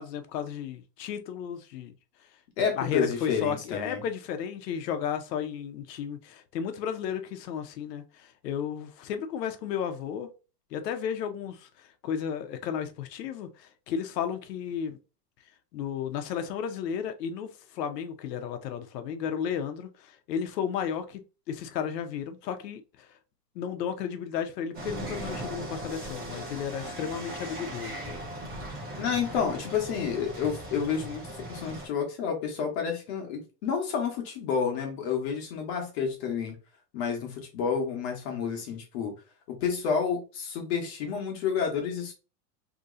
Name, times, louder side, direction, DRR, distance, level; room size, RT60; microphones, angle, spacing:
voice 1, 0.0-1.9 2.8-10.3 10.7-15.0 15.7-23.1 23.5-28.2, left 8 dB, 80° left, 0.8 m, -33 dB
voice 2, 2.6-4.0 28.9-36.6 36.9-39.2 39.5-42.1, left 6 dB, 40° left, 1.1 m, -30 dB
sound 1, 24.7-31.9, right 1 dB, 20° right, 1.0 m, -38 dB
3.0 x 2.7 x 3.7 m
supercardioid pair, 175°, 48 cm